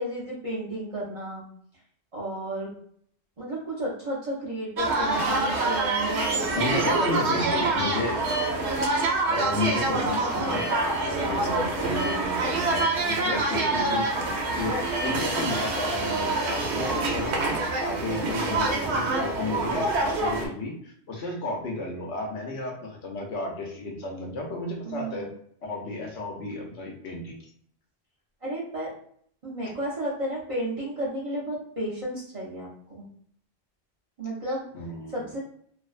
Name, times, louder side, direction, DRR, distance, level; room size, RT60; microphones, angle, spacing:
voice 1, 0.0-1.4 2.1-2.7 3.4-7.0 13.3-13.4 24.8-25.2 28.4-28.9 29.4-33.0 34.2-34.7 35.1-35.4, right 1 dB, 40° right, -5 dB, 0.6 m, -32 dB
sound 1, 4.8-20.5, right 2 dB, 90° right, 0.9 m, -26 dB
voice 2, 6.5-8.2 9.3-10.6 10.9-17.4 17.8-25.3 25.6-27.4 34.7-35.2, left 2 dB, 90° left, 0 dB, 1.0 m, -33 dB
2.5 x 2.1 x 2.3 m, 0.63 s
omnidirectional pair, 1.1 m